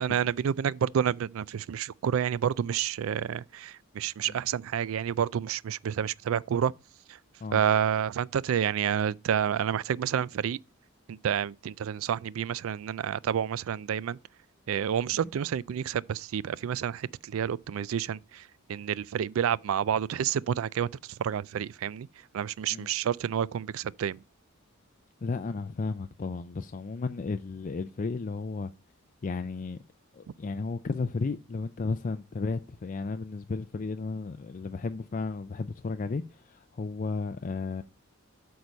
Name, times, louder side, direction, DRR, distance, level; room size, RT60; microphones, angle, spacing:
voice 1, 0.0-6.7 7.1-7.2 7.5-10.6 11.1-14.2 14.7-22.1 22.3-24.2, right 8 dB, 75° right, 0.3 m, -29 dB
voice 2, 25.2-28.7 29.2-29.8 30.1-37.8, left 4 dB, 40° left, 0.4 m, -33 dB
8.2 x 4.7 x 5.2 m
head